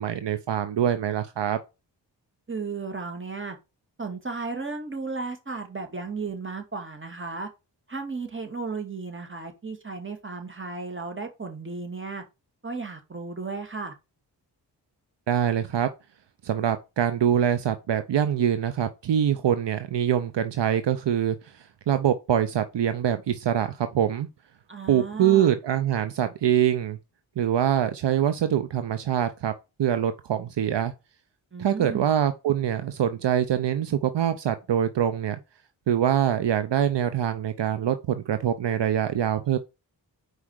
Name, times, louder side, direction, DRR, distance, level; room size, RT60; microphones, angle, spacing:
voice 1, 0.0-1.6 15.3-15.9 16.4-21.5 21.9-24.3 24.9-27.0 27.4-29.5 29.8-30.9 31.6-35.4 35.9-39.6, right 10 dB, 70° right, 0.8 m, -24 dB
voice 2, 2.5-3.6 4.0-7.5 7.9-12.2 12.6-13.9 24.7-25.5 31.5-32.1, right 4 dB, 25° right, 2.3 m, -34 dB
4.9 x 4.9 x 6.3 m
cardioid pair, 60°, 44 cm